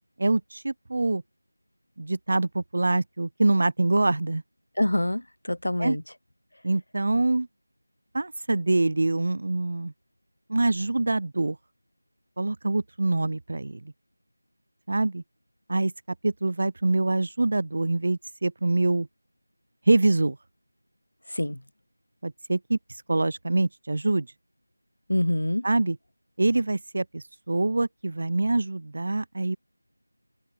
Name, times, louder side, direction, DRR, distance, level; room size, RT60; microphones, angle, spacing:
voice 1, 0.2-1.2 2.0-4.4 5.8-6.0 6.6-7.5 8.1-9.9 10.5-11.6 12.4-13.8 14.9-15.2 15.7-15.9 16.2-19.1 19.9-20.4 22.2-22.8 23.1-24.3 25.6-26.0 26.4-29.6, right 2 dB, 45° right, 0.6 m, -25 dB
voice 2, 4.8-6.0 21.3-21.6 25.1-25.7, left 1 dB, 85° left, 0.4 m, -26 dB
open air
figure-of-eight pair, 175°, 0 cm